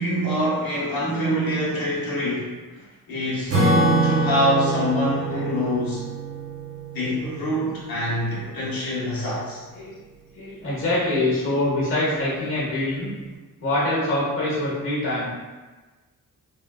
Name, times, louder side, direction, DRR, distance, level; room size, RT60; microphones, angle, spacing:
voice 1, 0.0-2.5 3.1-6.0 6.9-9.6, equal, 75° left, -7 dB, 1.0 m, -25 dB
Acoustic guitar / Strum, 3.5-8.3, right 2 dB, 40° right, 0.8 m, -25 dB
voice 2, 10.3-13.1 13.6-15.3, left 1 dB, 35° left, -7 dB, 0.9 m, -25 dB
3.2 x 2.2 x 2.3 m, 1.2 s
wide cardioid pair, 175°, 36 cm